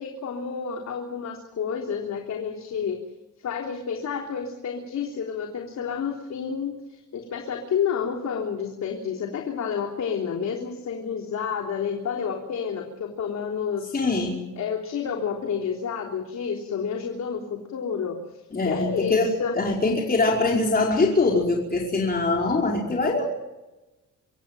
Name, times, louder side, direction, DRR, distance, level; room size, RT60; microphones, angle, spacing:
voice 1, 0.0-3.0 3.4-13.9 14.6-19.6, left 7 dB, 65° left, 2 dB, 3.6 m, -30 dB
voice 2, 13.9-14.4 18.5-23.3, left 3 dB, 30° left, -1 dB, 5.0 m, -23 dB
26.5 x 15.0 x 9.2 m, 1.0 s
cardioid pair, 90°, 30 cm